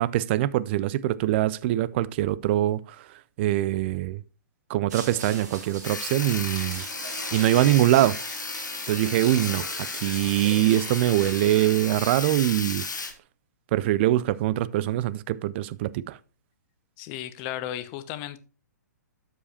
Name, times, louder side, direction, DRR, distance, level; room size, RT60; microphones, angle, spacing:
voice 1, 0.0-2.8 3.4-4.2 4.7-6.8 7.3-8.2 8.9-12.8 13.7-16.2, right 14 dB, 35° right, 0.4 m, -23 dB
sound 1, 4.9-12.2, right 3 dB, 60° right, 2.9 m, -41 dB
Sawing, 5.8-13.1, left 4 dB, 80° left, 1.3 m, -34 dB
voice 2, 17.0-18.4, left 12 dB, 30° left, 0.7 m, -34 dB
12.5 x 5.0 x 2.8 m
figure-of-eight pair, 120°, 10 cm